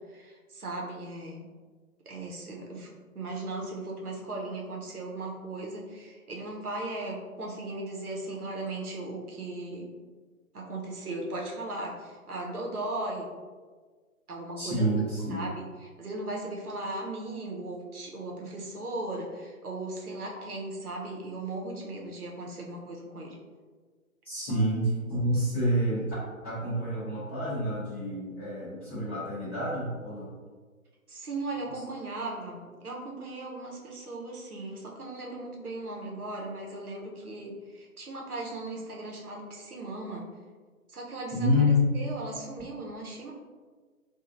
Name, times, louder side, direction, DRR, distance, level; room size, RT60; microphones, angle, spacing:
voice 1, 0.1-1.5 2.1-9.9 10.5-13.3 14.3-14.9 15.3-23.4 24.4-24.6 31.1-40.3 40.9-41.6 41.9-43.3, right 2 dB, 80° right, -2 dB, 0.8 m, -37 dB
voice 2, 14.6-15.5 24.2-26.0 26.4-30.3 31.7-31.8 41.3-41.9, left 1 dB, 10° left, -18 dB, 0.7 m, -28 dB
2.9 x 2.3 x 2.5 m, 1.4 s
figure-of-eight pair, 140°, 44 cm